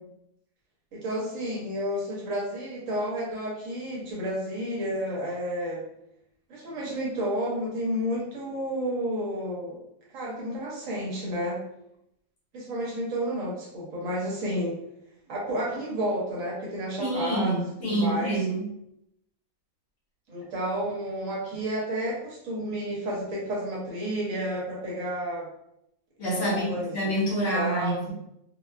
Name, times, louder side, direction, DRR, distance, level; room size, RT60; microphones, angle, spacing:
voice 1, 0.9-5.8 6.5-9.8 10.1-11.6 12.5-14.8 15.3-18.4 20.3-25.5 26.4-26.9 27.5-28.0, equal, 70° right, -3 dB, 1.1 m, -31 dB
voice 2, 17.0-18.6 26.2-28.1, right 1 dB, 60° left, -8 dB, 1.2 m, -27 dB
2.7 x 2.2 x 2.2 m, 0.80 s
omnidirectional pair, 1.5 m